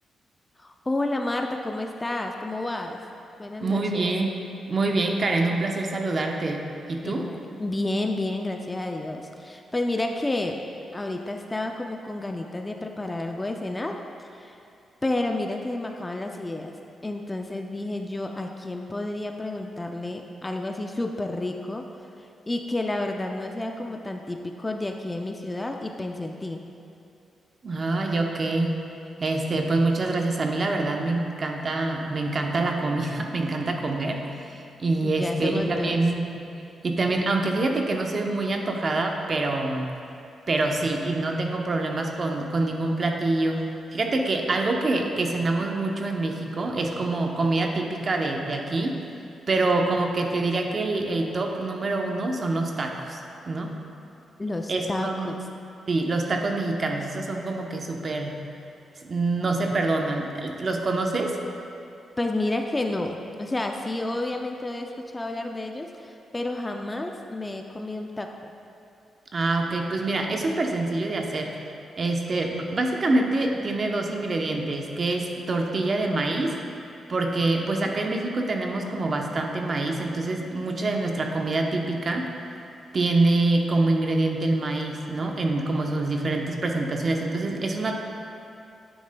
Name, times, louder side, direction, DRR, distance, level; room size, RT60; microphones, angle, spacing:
voice 1, 0.6-3.0 3.4-4.1 7.0-10.6 10.9-14.0 14.3-14.6 15.0-16.7 17.0-21.8 22.2-26.6 35.0-36.0 54.4-55.4 62.2-68.5 77.6-77.9, left 2 dB, 15° left, 3 dB, 0.4 m, -30 dB
voice 2, 3.6-4.4 4.7-7.3 27.6-28.8 29.2-36.5 36.8-39.9 40.5-43.6 43.9-48.9 49.5-53.7 54.7-55.3 55.9-58.4 59.0-61.4 69.3-71.6 72.0-76.6 77.1-82.3 82.9-87.9, right 2 dB, 40° right, 2 dB, 0.7 m, -26 dB
9.9 x 8.5 x 2.2 m, 2.7 s
cardioid pair, 130°, 0 cm